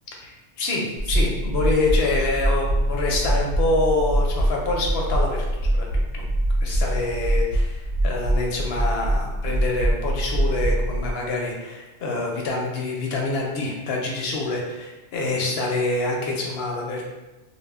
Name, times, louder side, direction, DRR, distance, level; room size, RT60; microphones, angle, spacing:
voice 1, 0.6-5.9 6.1-6.3 6.6-17.1, left 2 dB, 65° left, -1 dB, 0.8 m, -26 dB
sound 1, 1.0-11.1, right 1 dB, 85° right, 0.9 m, -23 dB
2.1 x 2.0 x 3.4 m, 1.1 s
omnidirectional pair, 1.2 m